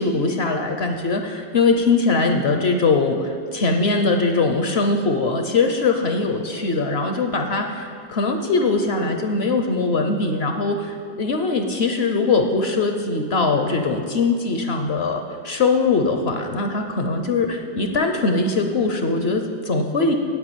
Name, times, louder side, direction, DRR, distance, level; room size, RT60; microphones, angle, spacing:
voice 1, 0.0-20.1, left 3 dB, 55° left, 5 dB, 0.7 m, -21 dB
9.4 x 8.3 x 9.1 m, 2.2 s
omnidirectional pair, 2.0 m